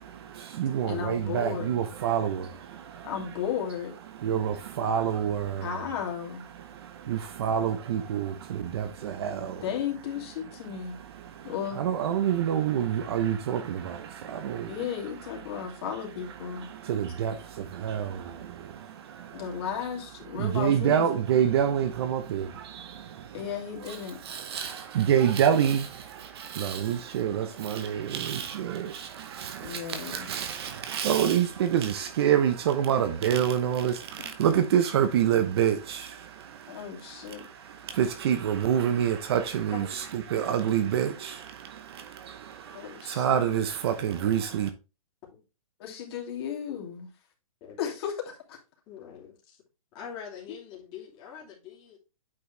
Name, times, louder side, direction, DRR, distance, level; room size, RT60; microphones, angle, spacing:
voice 1, 0.0-3.3 4.1-6.0 6.5-9.7 10.4-19.6 20.3-23.5 23.8-44.7, right 9 dB, 45° right, 0.9 m, -28 dB
voice 2, 0.9-1.7 3.0-3.9 5.6-6.4 9.6-11.0 11.4-11.8 14.7-16.7 19.3-21.1 23.3-24.2 29.6-30.3 34.2-34.3 36.7-37.5 42.7-43.4 45.8-47.1 47.8-48.6, left 8 dB, 45° left, 2.6 m, -34 dB
voice 3, 48.9-49.6 49.9-52.0, left 7 dB, 25° left, 2.7 m, -43 dB
8.6 x 4.6 x 3.2 m
hypercardioid pair, 155°, 18 cm